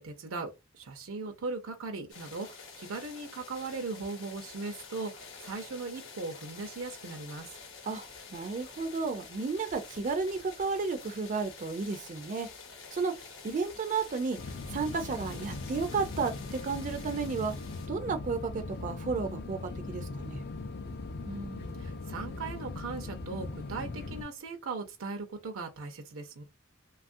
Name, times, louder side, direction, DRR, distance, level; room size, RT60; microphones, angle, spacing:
voice 1, 0.0-7.5 21.2-26.4, right 3 dB, 85° right, 0.6 m, -39 dB
sound 1, 2.1-17.9, left 5 dB, 70° left, 0.8 m, -48 dB
voice 2, 8.3-12.5 12.9-13.1 13.4-14.4 14.7-17.5 17.9-20.4, right 4 dB, 40° right, 0.4 m, -32 dB
sound 2, 14.4-24.2, left 3 dB, 50° left, 0.4 m, -40 dB
3.0 x 2.3 x 2.6 m
head